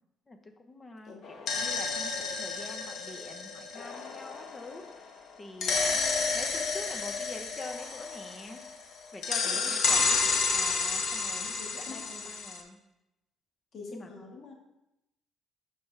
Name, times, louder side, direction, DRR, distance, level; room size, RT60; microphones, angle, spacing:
voice 1, 0.3-5.1 5.4-6.0 6.3-8.6 9.1-10.3 10.5-11.5 11.8-12.8 13.9-14.1, left 2 dB, 30° left, 5 dB, 1.0 m, -45 dB
sound 1, 1.2-4.9 5.6-8.8 9.2-12.6, left 4 dB, 65° left, 1.3 m, -31 dB
voice 2, 9.4-10.4 11.4-12.2 13.7-14.5, left 4 dB, 50° left, -1 dB, 1.8 m, -46 dB
8.0 x 5.3 x 3.4 m, 0.92 s
cardioid pair, 90°, 0 cm